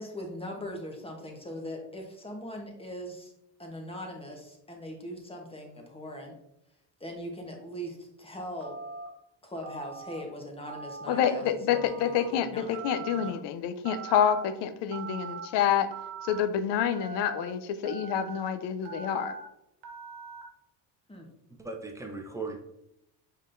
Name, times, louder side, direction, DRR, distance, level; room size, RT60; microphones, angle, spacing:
voice 1, 0.0-3.3 3.6-6.3 7.0-8.8 9.4-12.8 13.1-13.4 21.1-21.3, equal, 10° left, 1 dB, 1.1 m, -40 dB
Telephone, 8.6-9.1 9.6-10.2 10.7-11.3 11.7-12.3 12.7-13.3 13.8-14.4 14.9-15.5 15.9-16.4 16.9-17.4 17.8-18.4 18.8-19.4 19.8-20.4, right 5 dB, 85° right, 1.1 m, -41 dB
voice 2, 11.1-15.9 16.2-19.3, left 9 dB, 60° left, 11 dB, 0.6 m, -28 dB
voice 3, 21.6-22.6, right 3 dB, 5° right, 2 dB, 0.7 m, -37 dB
5.2 x 3.9 x 2.6 m, 0.81 s
supercardioid pair, 100°, 47 cm